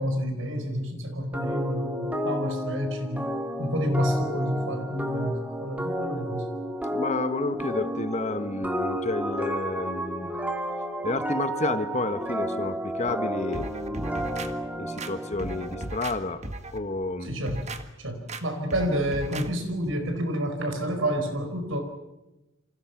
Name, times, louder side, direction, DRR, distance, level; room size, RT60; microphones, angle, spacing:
voice 1, 0.0-3.3 3.6-6.5 17.2-17.7 18.0-21.8, equal, 75° right, 6 dB, 5.0 m, -29 dB
sound 1, 1.3-15.9, equal, 5° right, 2.4 m, -31 dB
voice 2, 6.9-10.3 11.0-13.7 14.8-16.4 16.7-17.3, left 2 dB, 35° left, 11 dB, 1.3 m, -30 dB
sound 2, 13.5-14.5 15.0-16.2 16.4-16.8 17.3-17.8 18.3-18.4 18.7-19.5 19.8-20.0, right 2 dB, 35° right, 1.6 m, -36 dB
29.0 x 25.5 x 5.9 m, 1.0 s
head